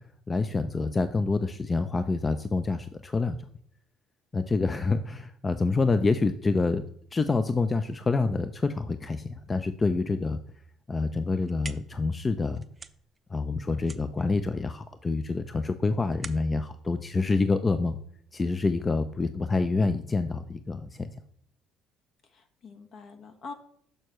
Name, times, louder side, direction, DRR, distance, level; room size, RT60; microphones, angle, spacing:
voice 1, 0.3-3.4 4.3-6.8 7.1-10.4 10.9-12.6 13.3-18.0 18.3-21.1, left 3 dB, 25° left, 10 dB, 0.5 m, -27 dB
sound 1, 11.3-18.1, right 4 dB, 25° right, 0.5 m, -48 dB
voice 2, 22.3-23.5, left 4 dB, 60° left, 6 dB, 1.2 m, -45 dB
6.5 x 6.4 x 3.1 m, 0.65 s
supercardioid pair, 70°, 0 cm